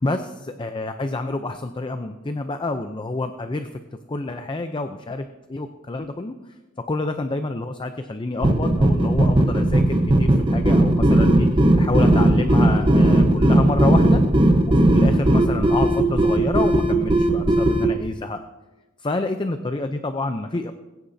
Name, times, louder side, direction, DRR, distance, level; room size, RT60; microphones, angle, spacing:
voice 1, 0.0-3.7 4.1-6.3 6.8-11.5 11.8-14.2 14.9-18.4 19.0-20.7, left 2 dB, 25° left, 7 dB, 0.5 m, -28 dB
sound 1, 8.4-17.9, right 1 dB, 25° right, 1.0 m, -17 dB
22.0 x 10.0 x 2.7 m, 1.1 s
head